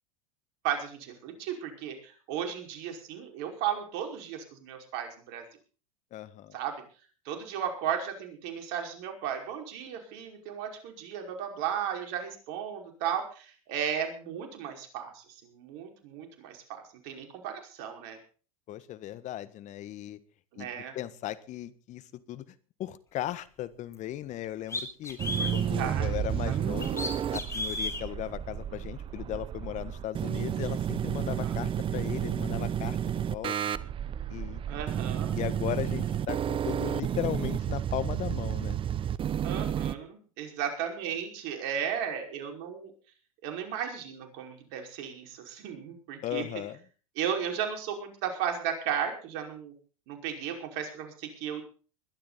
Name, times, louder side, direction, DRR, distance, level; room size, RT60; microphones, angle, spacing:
voice 1, 0.6-5.4 6.5-6.8 7.3-18.2 20.5-21.0 25.4-25.5 25.8-26.1 26.4-26.9 31.4-31.6 34.7-35.3 39.4-42.9 43.4-46.5 47.2-49.7 50.1-51.6, right 8 dB, 55° right, 4 dB, 5.3 m, -35 dB
voice 2, 6.1-6.5 18.7-20.2 20.6-20.7 20.9-22.0 22.3-22.4 22.8-25.2 25.5-33.5 34.3-34.6 35.3-38.8 46.2-46.8, left 13 dB, 40° left, 15 dB, 1.5 m, -37 dB
sound 1, 23.9-24.0 24.7-25.6 26.8-28.0, left 2 dB, 15° left, 4.0 m, -33 dB
sound 2, 25.2-39.9, right 9 dB, 30° right, 0.9 m, -31 dB
21.0 x 12.0 x 4.2 m, 0.39 s
hypercardioid pair, 90°, 18 cm